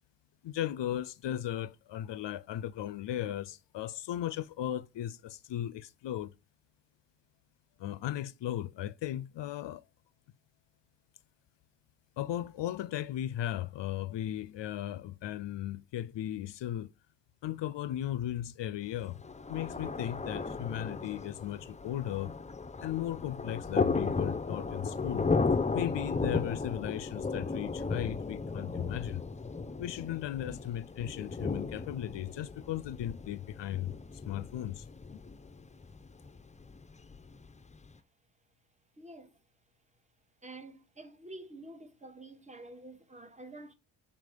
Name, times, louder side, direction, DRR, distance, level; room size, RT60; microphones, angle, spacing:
voice 1, 0.4-6.3 7.8-9.8 12.2-16.9 17.4-19.2 19.5-22.3 22.8-25.3 25.7-29.2 29.8-35.2, left 12 dB, 60° left, 0.5 m, -36 dB
Thunder, 19.0-37.9, left 4 dB, 15° left, 0.6 m, -35 dB
voice 2, 39.0-39.4 40.4-43.7, right 2 dB, 15° right, 1.2 m, -48 dB
7.0 x 3.2 x 5.2 m
supercardioid pair, 45°, 50 cm